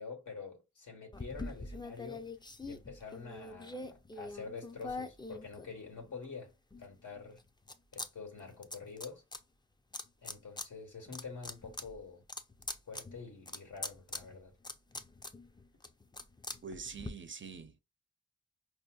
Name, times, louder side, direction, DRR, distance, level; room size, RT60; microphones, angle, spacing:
voice 1, 0.0-2.3 2.6-6.5 6.8-7.4 7.9-9.2 10.2-12.2 12.9-14.5, left 4 dB, 85° left, 1.3 m, -47 dB
sound 1, 1.1-6.2 6.7-8.1 8.3-9.4 9.9-10.7 11.0-17.1, left 2 dB, 15° left, 0.4 m, -44 dB
voice 2, 16.6-17.8, right 5 dB, 40° right, 0.5 m, -45 dB
4.9 x 2.7 x 2.3 m
wide cardioid pair, 70°, 30 cm